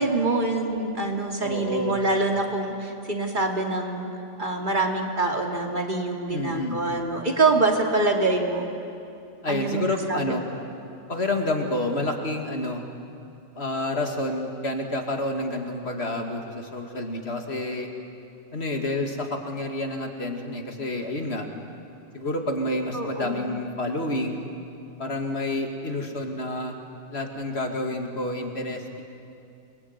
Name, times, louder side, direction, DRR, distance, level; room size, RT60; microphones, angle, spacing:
voice 1, 0.0-4.1 4.4-8.7 9.5-9.8 10.1-10.2 22.9-23.5, right 2 dB, 40° right, 2 dB, 2.9 m, -25 dB
voice 2, 1.4-1.9 6.3-6.8 9.4-10.4 11.1-12.8 13.6-17.9 18.5-21.5 22.1-24.4 25.0-26.8 27.1-29.0, left 1 dB, 60° left, 3 dB, 2.6 m, -29 dB
28.5 x 21.5 x 9.5 m, 2.6 s
omnidirectional pair, 1.3 m